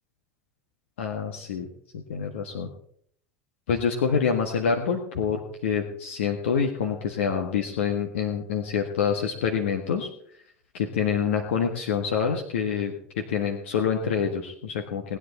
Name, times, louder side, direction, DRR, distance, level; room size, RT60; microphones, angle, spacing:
voice 1, 1.0-1.7 1.9-2.7 3.7-10.1 10.7-15.2, left 7 dB, 65° left, 2 dB, 1.5 m, -26 dB
19.0 x 10.0 x 4.2 m, 0.64 s
figure-of-eight pair, 70°, 7 cm